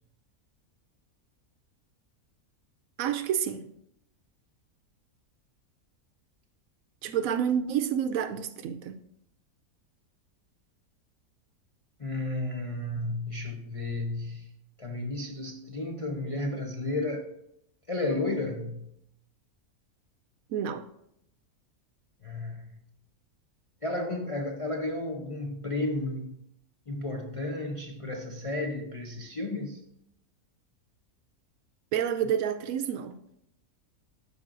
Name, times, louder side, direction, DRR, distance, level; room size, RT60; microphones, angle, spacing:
voice 1, 3.0-3.7 7.0-9.0 20.5-20.8 31.9-33.2, right 8 dB, 75° right, 1.0 m, -29 dB
voice 2, 12.0-14.5 14.8-17.2 17.9-18.9 22.2-22.8 23.8-26.3 26.9-29.8, left 2 dB, 35° left, 0.5 m, -33 dB
12.0 x 5.1 x 2.5 m
omnidirectional pair, 1.6 m